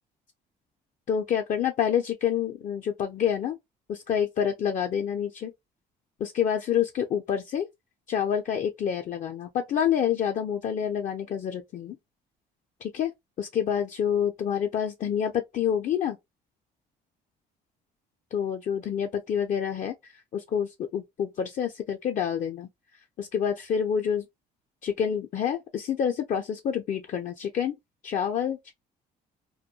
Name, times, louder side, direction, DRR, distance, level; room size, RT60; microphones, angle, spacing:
voice 1, 1.1-3.6 3.9-5.5 6.2-7.7 8.1-12.0 12.8-13.1 13.4-16.2 18.3-22.7 23.2-24.3 24.8-27.8 28.0-28.7, left 8 dB, 45° left, 0.4 m, -28 dB
2.2 x 2.2 x 2.7 m
cardioid pair, 110°, 17 cm